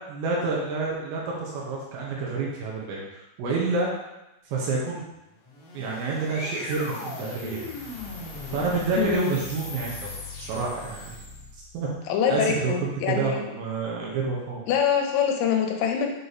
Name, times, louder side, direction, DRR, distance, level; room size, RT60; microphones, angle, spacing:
voice 1, 0.1-3.9 4.5-5.0 5.7-7.6 8.5-11.2 11.7-11.9 12.3-14.6, right 3 dB, 75° right, -4 dB, 3.0 m, -28 dB
sound 1, 5.4-11.7, left 2 dB, 60° left, 2.7 m, -38 dB
voice 2, 9.0-9.3 12.1-13.5 14.7-16.1, left 7 dB, 85° left, 3 dB, 3.3 m, -24 dB
8.0 x 3.0 x 4.0 m, 0.92 s
omnidirectional pair, 5.8 m